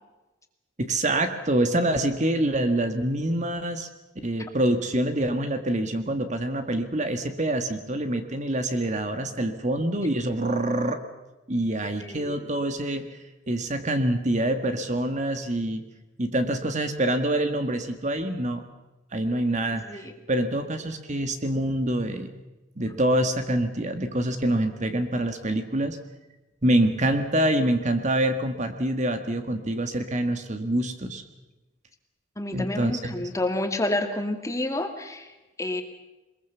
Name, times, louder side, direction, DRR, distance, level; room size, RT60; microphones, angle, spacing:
voice 1, 0.8-3.9 4.2-11.0 11.5-13.1 13.5-15.8 16.2-18.6 19.1-22.4 22.8-26.0 26.6-31.2 32.5-33.3, right 1 dB, 40° right, 8 dB, 1.7 m, -26 dB
voice 2, 12.0-12.6 19.7-20.1 32.4-35.3 35.6-35.8, left 1 dB, 15° left, 5 dB, 2.2 m, -29 dB
23.0 x 21.5 x 6.9 m, 1.1 s
head